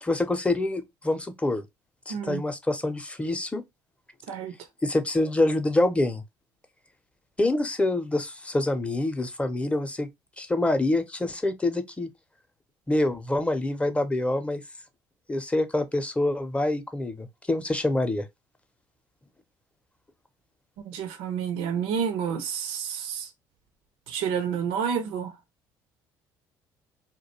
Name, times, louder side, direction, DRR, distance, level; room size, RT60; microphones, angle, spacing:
voice 1, 0.0-1.6 2.1-3.6 4.8-6.2 7.4-10.1 10.4-12.1 12.9-14.6 15.3-18.3, left 2 dB, 15° left, 0.6 m, -26 dB
voice 2, 2.1-2.4 4.3-4.5 20.8-23.3 24.1-25.3, right 7 dB, 75° right, 0.6 m, -29 dB
2.3 x 2.2 x 2.9 m
hypercardioid pair, 65°, 9 cm